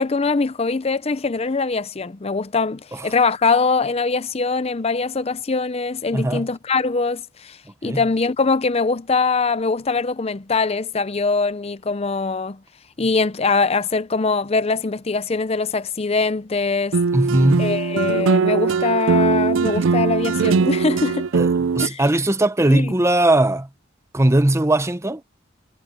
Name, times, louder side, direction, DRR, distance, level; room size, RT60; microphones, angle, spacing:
voice 1, 0.0-7.6 7.8-12.6 13.0-17.0 17.6-21.3 21.8-22.0 22.7-22.9, left 4 dB, 30° left, 0.5 m, -22 dB
voice 2, 6.1-6.5 7.8-8.0 17.1-17.7 21.3-21.5 21.8-23.7 24.1-25.2, right 1 dB, 15° right, 0.7 m, -18 dB
sound 1, 16.9-21.9, right 5 dB, 70° right, 0.5 m, -20 dB
head